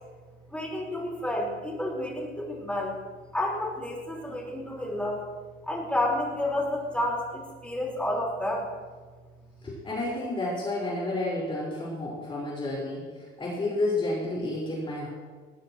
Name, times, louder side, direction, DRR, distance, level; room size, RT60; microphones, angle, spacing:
voice 1, 0.5-3.0 3.3-5.2 5.7-8.7, left 1 dB, 5° left, -3 dB, 4.6 m, -30 dB
voice 2, 9.6-15.1, left 2 dB, 25° left, -6 dB, 4.9 m, -31 dB
20.5 x 17.5 x 3.1 m, 1.4 s
cardioid pair, 140°, 21 cm